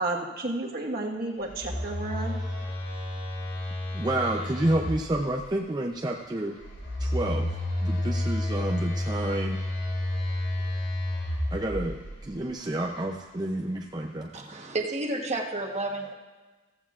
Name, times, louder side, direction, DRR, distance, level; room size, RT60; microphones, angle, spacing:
voice 1, 0.0-2.4, right 2 dB, 55° right, 0 dB, 1.4 m, -31 dB
Telephone, 1.4-5.4 6.6-12.3, left 1 dB, 70° left, 3.6 m, -31 dB
voice 2, 3.9-6.6 7.0-7.5 7.8-9.6 11.5-12.0 12.2-14.3, right 1 dB, 20° right, 0 dB, 0.5 m, -29 dB
voice 3, 14.3-16.1, right 2 dB, 35° right, 2 dB, 1.2 m, -31 dB
15.0 x 14.5 x 2.4 m, 1.3 s
head